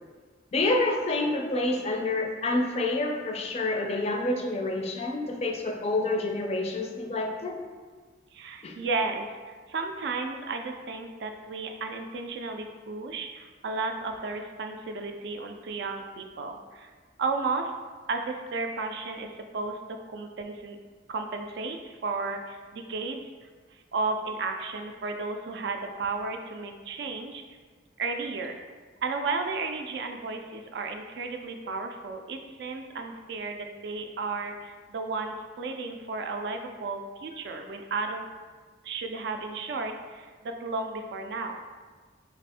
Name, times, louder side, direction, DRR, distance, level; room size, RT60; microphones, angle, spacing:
voice 1, 0.5-7.6 8.6-8.7, left 2 dB, 35° left, 2 dB, 0.4 m, -28 dB
voice 2, 8.3-9.3 9.7-16.9 17.2-17.7 18.1-19.8 20.1-20.8 21.1-23.2 23.9-27.4 28.0-28.6 29.0-38.2 38.8-41.6, right 3 dB, 65° right, 5 dB, 0.3 m, -33 dB
3.4 x 2.4 x 3.4 m, 1.4 s
head